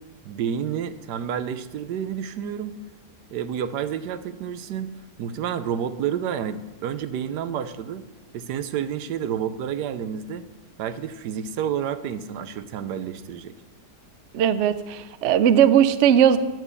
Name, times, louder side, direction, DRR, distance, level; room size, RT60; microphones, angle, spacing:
voice 1, 0.2-2.8 3.3-4.9 5.2-8.0 8.3-10.4 10.8-13.5, right 8 dB, 85° right, 12 dB, 1.3 m, -29 dB
voice 2, 14.3-16.4, right 9 dB, 65° right, 12 dB, 0.7 m, -18 dB
10.5 x 7.5 x 6.9 m, 1.2 s
omnidirectional pair, 1.8 m